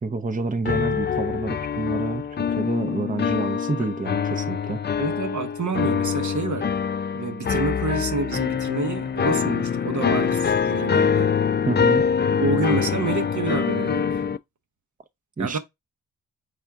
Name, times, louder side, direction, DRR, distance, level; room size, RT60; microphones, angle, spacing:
voice 1, 0.0-4.8 11.7-12.1 15.4-15.6, right 3 dB, 25° right, 0.7 m, -28 dB
sound 1, 0.6-14.4, left 7 dB, 30° left, 0.4 m, -24 dB
voice 2, 5.0-6.7 7.1-11.3 12.4-14.2 15.4-15.6, right 4 dB, 55° right, 0.9 m, -28 dB
4.3 x 3.5 x 3.5 m
supercardioid pair, 45°, 36 cm